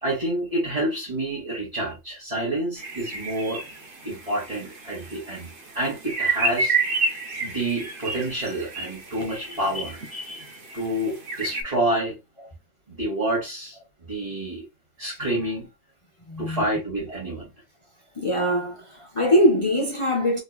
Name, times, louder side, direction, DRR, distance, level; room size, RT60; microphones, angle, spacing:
voice 1, 0.0-3.6 4.0-7.1 7.4-12.2 12.9-13.8 14.1-14.7 15.0-15.7 16.4-17.5, right 1 dB, 30° right, 1.6 m, -28 dB
sound 1, 2.8-11.6, right 4 dB, 50° right, 0.9 m, -30 dB
voice 2, 16.3-16.6 18.2-20.4, equal, 30° left, 0.7 m, -22 dB
3.9 x 2.9 x 2.3 m
omnidirectional pair, 1.3 m